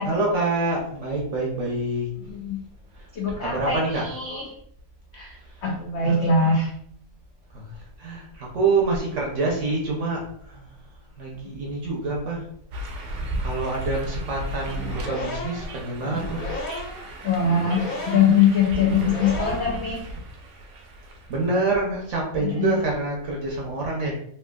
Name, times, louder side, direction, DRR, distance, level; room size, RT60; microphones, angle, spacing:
voice 1, 0.0-2.1 3.4-4.0 6.0-6.2 7.5-7.6 8.0-10.7 11.2-12.5 13.4-16.5 21.3-24.1, right 3 dB, 60° right, -2 dB, 0.8 m, -26 dB
voice 2, 2.2-2.6 3.1-4.5 5.1-6.7 17.2-20.0 22.4-22.7, left 5 dB, 80° left, -1 dB, 0.6 m, -22 dB
sound 1, 12.7-21.5, right 1 dB, 80° right, 1.2 m, -35 dB
sound 2, 14.7-19.9, left 2 dB, 65° left, 1.0 m, -34 dB
3.4 x 2.7 x 2.2 m, 0.68 s
omnidirectional pair, 1.8 m